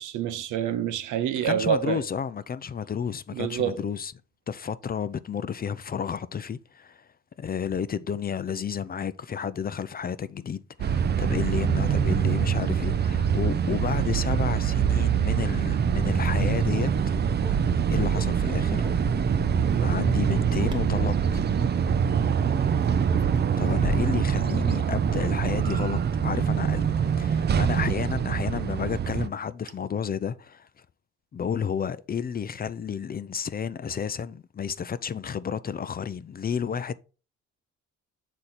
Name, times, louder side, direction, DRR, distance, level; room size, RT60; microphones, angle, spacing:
voice 1, 0.0-2.0 3.3-3.8 19.6-19.9 24.1-24.2, right 10 dB, 80° right, 0.8 m, -28 dB
voice 2, 1.4-4.1 4.5-7.1 7.4-16.9 17.9-18.8 19.8-21.4 23.6-26.0 26.2-30.7 31.3-36.9, left 7 dB, 30° left, 0.4 m, -31 dB
sound 1, 10.8-29.3, right 7 dB, 35° right, 0.5 m, -24 dB
Bark, 16.2-24.2, equal, 15° right, 1.1 m, -36 dB
6.5 x 4.3 x 4.1 m
cardioid pair, 90°, 30 cm